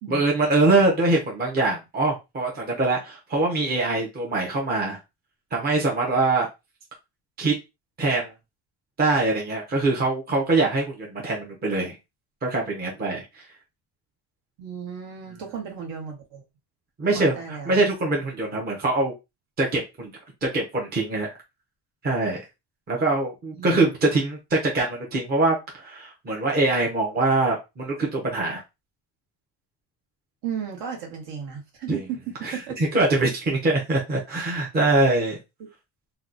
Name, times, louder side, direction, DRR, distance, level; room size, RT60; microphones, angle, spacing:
voice 1, 0.1-5.0 5.5-6.5 7.4-7.5 8.0-8.3 9.0-12.0 12.4-13.5 17.0-19.1 19.6-20.1 20.4-21.3 22.0-22.4 22.9-28.6 31.9-32.0 32.4-35.4, right 2 dB, 20° right, 0.7 m, -23 dB
voice 2, 14.6-16.4 17.1-17.8 23.5-23.8 30.4-32.2 32.5-32.8, right 7 dB, 60° right, 1.3 m, -34 dB
2.9 x 2.3 x 3.8 m
cardioid pair, 175°, 48 cm